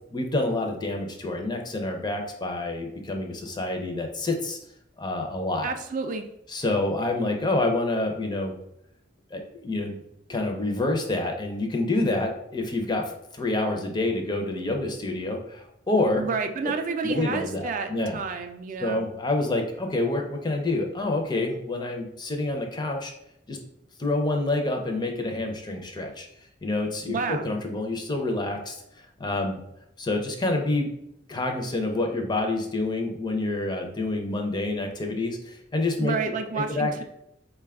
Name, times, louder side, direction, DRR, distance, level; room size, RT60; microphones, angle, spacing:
voice 1, 0.1-4.6 5.0-5.7 6.5-8.5 9.3-9.9 10.3-16.3 17.0-18.2 18.8-23.1 23.5-23.6 24.0-26.3 26.6-28.8 29.2-29.6 30.0-30.9 31.3-36.2 36.5-37.0, left 2 dB, 25° left, 3 dB, 0.5 m, -27 dB
voice 2, 5.6-6.2 16.2-19.1 27.1-27.5 36.0-37.0, right 4 dB, 45° right, 7 dB, 0.3 m, -30 dB
3.9 x 2.2 x 3.5 m, 0.77 s
head